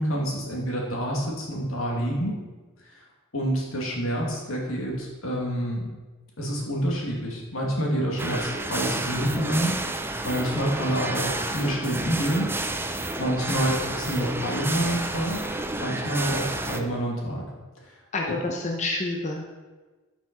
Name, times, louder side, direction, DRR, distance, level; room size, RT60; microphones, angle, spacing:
voice 1, 0.0-2.4 2.8-3.0 3.3-5.9 6.4-12.5 13.2-15.5 15.8-17.4, equal, 80° left, -1 dB, 2.4 m, -28 dB
sound 1, 8.2-16.8, right 2 dB, 10° right, 0.5 m, -30 dB
voice 2, 13.5-13.9 18.1-19.6, left 2 dB, 35° left, 0 dB, 0.9 m, -30 dB
12.0 x 6.0 x 4.4 m, 1.3 s
head